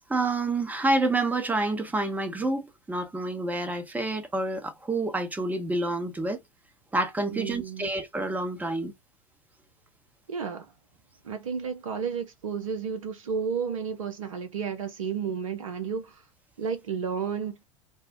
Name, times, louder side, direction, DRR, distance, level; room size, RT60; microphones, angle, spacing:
voice 1, 0.1-6.4 6.9-8.9, right 2 dB, 10° right, 0.7 m, -28 dB
voice 2, 7.3-7.9 10.3-10.7 11.2-16.2 16.6-17.6, right 6 dB, 70° right, 0.6 m, -32 dB
3.4 x 2.1 x 2.5 m
figure-of-eight pair, 85°, 17 cm